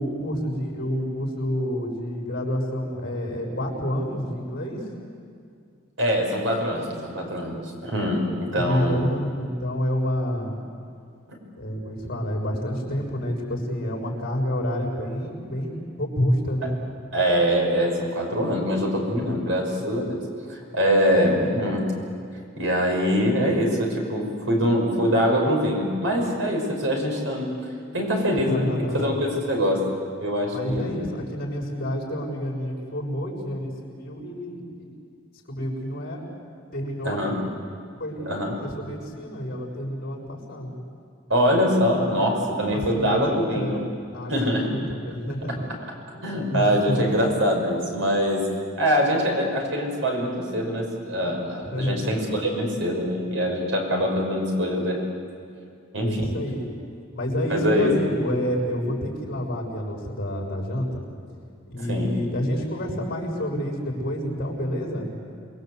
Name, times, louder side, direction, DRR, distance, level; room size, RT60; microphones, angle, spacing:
voice 1, 0.0-4.8 8.5-10.5 11.6-16.7 21.1-21.8 28.5-29.1 30.5-34.9 35.5-36.3 36.7-37.4 38.0-40.8 42.7-45.6 46.1-47.1 51.7-52.1 56.0-56.7 57.1-61.0 61.7-65.1, equal, 50° left, 0 dB, 6.3 m, -29 dB
voice 2, 6.0-9.0 16.6-16.7 17.1-20.2 20.5-21.9 22.6-27.5 27.9-28.7 28.9-29.8 30.2-31.0 37.0-37.4 38.3-38.6 41.3-43.8 44.3-44.7 46.2-48.5 48.8-55.0 55.9-56.3 57.5-58.0 61.9-62.1, equal, 70° right, 1 dB, 5.9 m, -23 dB
28.5 x 21.5 x 8.1 m, 2.4 s
head